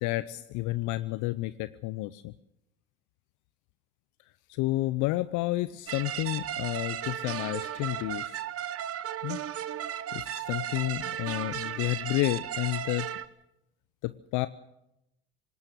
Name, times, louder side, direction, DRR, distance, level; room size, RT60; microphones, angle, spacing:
voice 1, 0.0-2.3 4.5-8.4 9.2-9.4 10.1-13.1 14.0-14.5, left 18 dB, 60° left, 15 dB, 0.7 m, -30 dB
sound 1, 5.9-13.3, right 10 dB, 45° right, 1.2 m, -35 dB
19.5 x 18.5 x 8.0 m, 0.88 s
hypercardioid pair, 70°, 34 cm